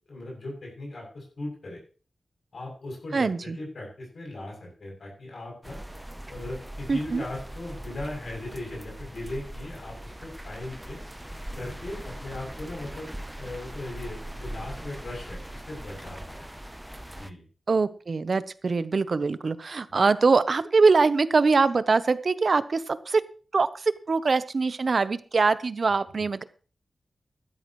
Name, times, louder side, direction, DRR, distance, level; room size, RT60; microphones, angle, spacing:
voice 1, 0.1-1.8 2.5-5.8 6.3-11.0 11.5-13.1 13.4-16.5 17.1-17.4 19.9-20.0, left 2 dB, 65° left, -1 dB, 7.6 m, -38 dB
voice 2, 3.1-3.6 6.9-7.2 17.7-23.2 23.5-26.4, right 4 dB, 55° right, 14 dB, 0.8 m, -23 dB
sound 1, 5.6-17.3, right 1 dB, 5° right, 0.7 m, -40 dB
14.5 x 13.0 x 3.1 m, 0.38 s
wide cardioid pair, 95°, 0 cm